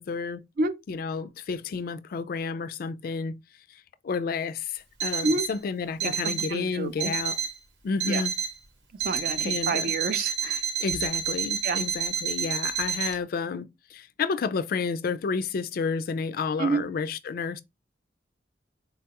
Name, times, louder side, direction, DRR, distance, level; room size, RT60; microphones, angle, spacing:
voice 1, 0.0-0.4 0.9-3.4 3.7-7.4 7.8-8.3 9.4-9.9 10.8-17.6, left 5 dB, 55° left, 0.3 m, -31 dB
Alarm, 5.0-5.6 6.0-6.6 7.0-7.6 8.0-8.6 9.0-13.1, right 7 dB, 80° right, 0.9 m, -29 dB
voice 2, 6.0-7.1 8.0-8.2 9.0-10.6 11.6-11.8 16.6-16.8, right 3 dB, 50° right, 0.4 m, -29 dB
3.8 x 2.2 x 2.8 m
head